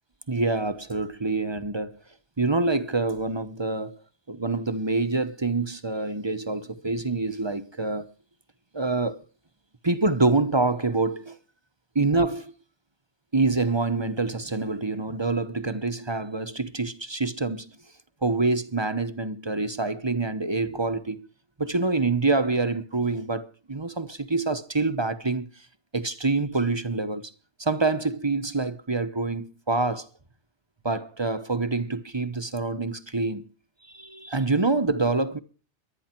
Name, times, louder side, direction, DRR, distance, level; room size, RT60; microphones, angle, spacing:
voice 1, 0.3-2.0 2.4-4.0 4.3-8.1 8.7-9.2 9.8-11.4 11.9-12.5 13.3-17.7 18.2-21.3 21.6-25.5 25.9-27.3 27.6-30.1 30.8-33.4 33.9-35.4, right 3 dB, 25° right, 1.0 m, -26 dB
23.0 x 9.9 x 4.5 m
omnidirectional pair, 1.2 m